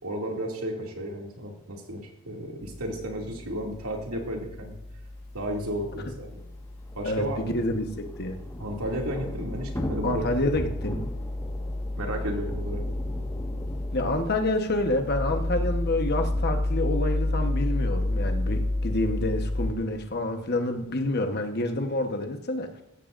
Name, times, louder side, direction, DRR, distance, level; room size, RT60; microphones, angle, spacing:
voice 1, 0.0-4.7 5.3-6.4 7.0-7.5 8.6-10.3 12.0-12.8, equal, 85° right, 0 dB, 2.5 m, -33 dB
sound 1, 2.6-19.7, left 1 dB, 30° left, 2.6 m, -31 dB
Thunder / Rain, 5.5-5.6 5.8-5.9 6.2-22.1, equal, 15° left, 1.5 m, -42 dB
voice 2, 7.0-8.4 10.0-11.0 13.9-22.7, left 2 dB, 50° left, 5 dB, 1.2 m, -28 dB
15.5 x 14.5 x 2.6 m, 0.82 s
head